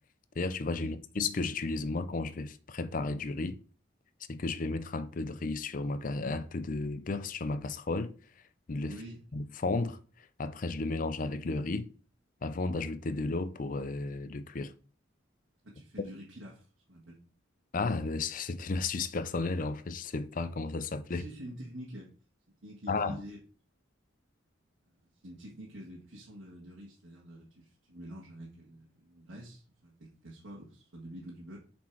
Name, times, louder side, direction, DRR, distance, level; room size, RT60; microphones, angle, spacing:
voice 1, 0.4-3.6 4.3-8.1 8.7-9.0 9.3-11.9 12.4-14.7 17.7-21.2 22.9-23.2, left 3 dB, 45° left, 0.5 m, -33 dB
voice 2, 8.9-9.2 15.6-17.2 21.1-22.1 22.6-23.4 24.9-25.0 25.2-31.6, equal, 80° right, 1.7 m, -47 dB
7.2 x 4.4 x 4.5 m
head